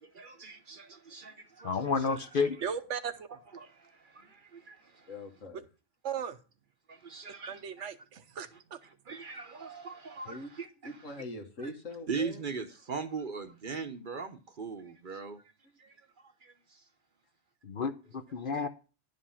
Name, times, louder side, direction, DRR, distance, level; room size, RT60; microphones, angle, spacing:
voice 1, 0.0-1.8 2.1-2.2 3.5-5.1 6.9-7.9 9.1-10.7 12.1-15.4 15.8-15.9 16.4-16.8, right 5 dB, 45° right, 0.9 m, -40 dB
voice 2, 1.6-2.6 17.6-18.7, left 5 dB, 50° left, 0.8 m, -30 dB
voice 3, 2.6-3.4 6.0-6.4 7.5-8.8 18.6-18.7, right 7 dB, 70° right, 1.1 m, -37 dB
voice 4, 5.1-5.7 10.2-10.5 10.8-12.4, left 2 dB, 80° left, 1.9 m, -43 dB
11.0 x 5.2 x 5.6 m
omnidirectional pair, 1.3 m